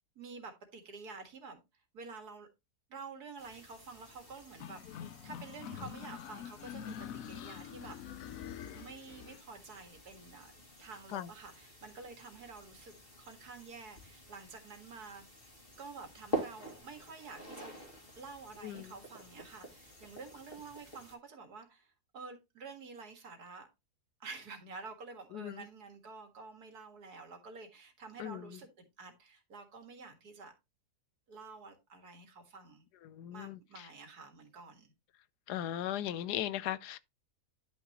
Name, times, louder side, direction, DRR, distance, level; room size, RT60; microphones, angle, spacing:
voice 1, 0.2-1.6 1.9-2.5 2.9-8.0 8.7-10.5 10.8-15.5 15.8-17.7 18.2-23.7 24.2-30.5 31.3-32.9 33.3-34.9, right 4 dB, 75° right, 2.3 m, -49 dB
sound 1, 3.4-21.2, right 1 dB, 35° left, 2.3 m, -48 dB
sound 2, 4.6-9.4, left 9 dB, 65° left, 1.0 m, -45 dB
voice 2, 18.6-18.9 25.3-25.6 28.2-28.6 33.0-33.9 35.5-37.0, left 12 dB, 85° left, 1.2 m, -38 dB
10.5 x 5.7 x 3.0 m
omnidirectional pair, 1.7 m